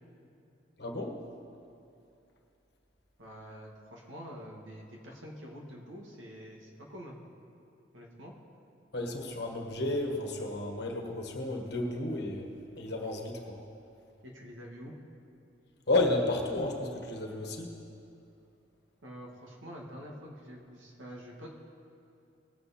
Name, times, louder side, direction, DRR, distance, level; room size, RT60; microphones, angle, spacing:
voice 1, 0.8-1.1 8.9-12.5 12.8-13.6 15.9-17.7, left 2 dB, 60° left, 1 dB, 1.4 m, -32 dB
voice 2, 3.2-7.2 7.9-8.3 14.2-15.0 19.0-21.5, equal, 90° right, -1 dB, 1.8 m, -46 dB
19.0 x 8.0 x 4.2 m, 2.6 s
head